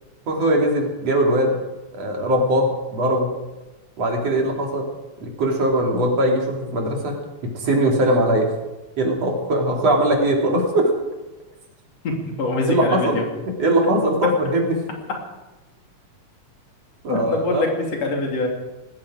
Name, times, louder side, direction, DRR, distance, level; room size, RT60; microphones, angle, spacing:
voice 1, 0.3-1.5 1.9-3.3 4.0-4.9 5.2-7.2 7.4-8.5 9.0-10.9 12.7-13.2 13.6-14.8 17.0-17.7, right 1 dB, 55° right, 0 dB, 3.9 m, -20 dB
voice 2, 12.0-13.2 17.1-18.5, left 2 dB, 55° left, 0 dB, 4.1 m, -24 dB
19.0 x 15.0 x 5.0 m, 1.1 s
omnidirectional pair, 3.5 m